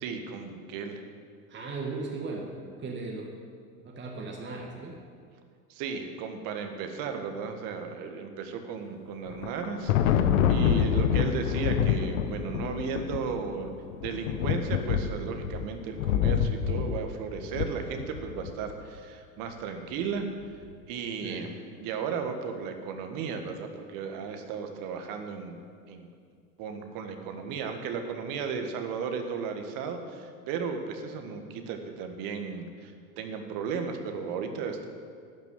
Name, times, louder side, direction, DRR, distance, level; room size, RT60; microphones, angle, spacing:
voice 1, 0.0-1.0 5.7-13.7 14.0-20.3 20.9-21.5 21.8-25.6 25.9-26.1 26.6-34.8, right 6 dB, 50° right, 6 dB, 1.7 m, -35 dB
voice 2, 1.5-3.3 3.8-5.0 10.7-11.1 21.2-21.6, right 3 dB, 25° right, 0 dB, 1.6 m, -37 dB
Thunder, 9.3-18.7, left 8 dB, 70° left, 0.8 m, -27 dB
12.0 x 6.0 x 9.2 m, 2.2 s
hypercardioid pair, 85°, 43 cm